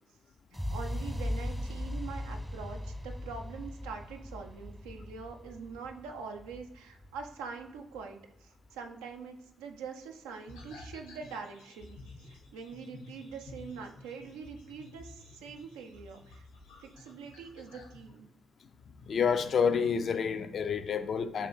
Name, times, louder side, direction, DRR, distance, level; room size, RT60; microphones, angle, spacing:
sound 1, 0.5-8.5, left 1 dB, ahead, 0.5 m, -39 dB
voice 1, 0.7-16.4 16.8-18.3, right 5 dB, 80° right, 0.4 m, -44 dB
sound 2, 10.5-18.1, left 2 dB, 90° left, 0.9 m, -52 dB
voice 2, 19.1-21.5, left 6 dB, 55° left, 0.3 m, -28 dB
3.3 x 2.7 x 4.2 m
hypercardioid pair, 40°, 0 cm